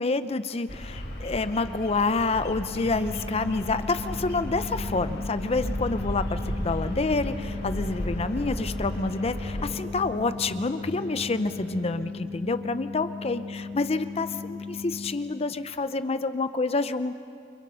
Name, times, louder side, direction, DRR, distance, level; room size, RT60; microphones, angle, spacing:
voice 1, 0.0-17.1, left 3 dB, 35° left, 11 dB, 0.6 m, -28 dB
Bird vocalization bird call bird song, 0.7-9.7, equal, 65° left, 5.8 m, -34 dB
sound 1, 1.6-11.9, equal, 30° right, 4.4 m, -43 dB
sound 2, 2.7-15.1, left 4 dB, 55° right, 2.8 m, -37 dB
29.0 x 24.5 x 5.6 m, 2.4 s
head